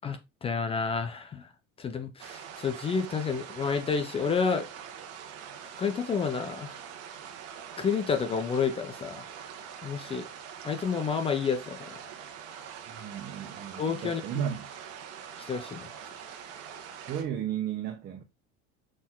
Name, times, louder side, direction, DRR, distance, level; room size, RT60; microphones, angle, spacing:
voice 1, 0.0-1.4 1.8-4.7 5.8-6.7 7.8-9.3 9.8-10.3 10.6-11.8 13.8-14.4 15.5-15.9, left 5 dB, 20° left, 0.6 m, -30 dB
sound 1, 2.2-17.2, right 8 dB, 50° right, 1.5 m, -44 dB
voice 2, 12.9-14.7 17.1-18.2, right 9 dB, 30° right, 0.9 m, -34 dB
6.3 x 4.2 x 3.8 m
cardioid pair, 160°, 32 cm